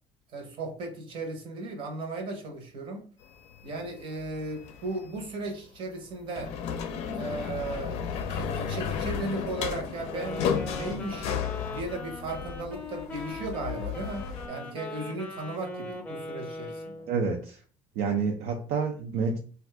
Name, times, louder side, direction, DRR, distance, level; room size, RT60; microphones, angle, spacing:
voice 1, 0.3-3.0 3.6-6.6 7.1-17.1, right 2 dB, 50° right, 0.9 m, -36 dB
sound 1, 3.2-5.3 6.2-14.5, left 7 dB, 65° left, 0.5 m, -34 dB
Wind instrument woodwind instrument, 10.1-17.2, left 2 dB, 15° left, 0.6 m, -40 dB
voice 2, 17.1-17.6 18.0-19.4, right 5 dB, 70° right, 0.4 m, -28 dB
2.5 x 2.3 x 3.3 m
cardioid pair, 140°, 11 cm